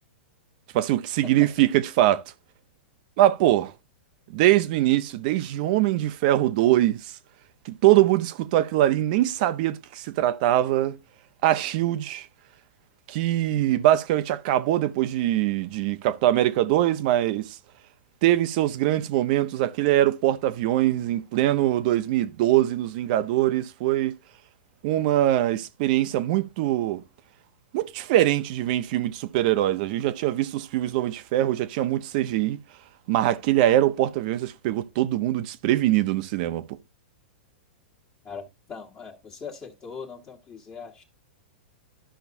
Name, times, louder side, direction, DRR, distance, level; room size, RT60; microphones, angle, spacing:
voice 1, 0.7-2.2 3.2-3.7 4.3-7.0 7.7-11.0 11.4-12.3 13.1-17.6 18.2-24.1 24.8-27.0 27.7-32.6 33.1-36.8, right 14 dB, 50° right, 0.8 m, -22 dB
voice 2, 38.2-41.0, left 5 dB, 25° left, 1.5 m, -40 dB
12.5 x 5.7 x 2.7 m
hypercardioid pair, 125°, 6 cm